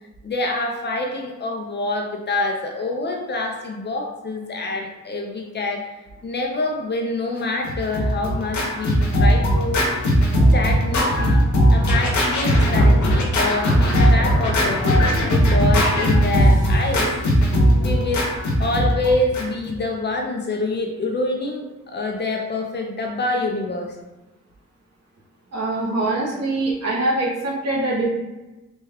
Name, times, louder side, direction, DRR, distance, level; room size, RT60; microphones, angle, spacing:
voice 1, 0.2-5.8 6.2-9.9 10.5-11.4 11.7-17.1 17.8-18.3 18.6-23.9, left 2 dB, 40° left, 1 dB, 0.4 m, -26 dB
Scratching (performance technique), 7.6-19.7, equal, 80° left, 0.8 m, -18 dB
voice 2, 25.5-28.1, right 2 dB, 60° right, -4 dB, 1.0 m, -23 dB
3.3 x 2.2 x 3.4 m, 1.0 s
wide cardioid pair, 175°, 29 cm